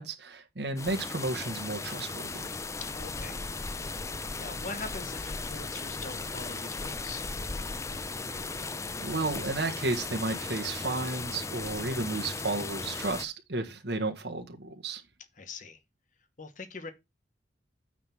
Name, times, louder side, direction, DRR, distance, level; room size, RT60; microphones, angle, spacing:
voice 1, 0.0-2.5 9.0-15.0, right 2 dB, 65° right, 1.4 m, -33 dB
sound 1, 0.8-13.3, left 3 dB, 15° left, 0.4 m, -37 dB
voice 2, 2.8-3.4 3.9-7.3 15.4-15.8 16.4-16.9, left 3 dB, 45° left, 1.2 m, -42 dB
9.1 x 3.6 x 5.7 m
head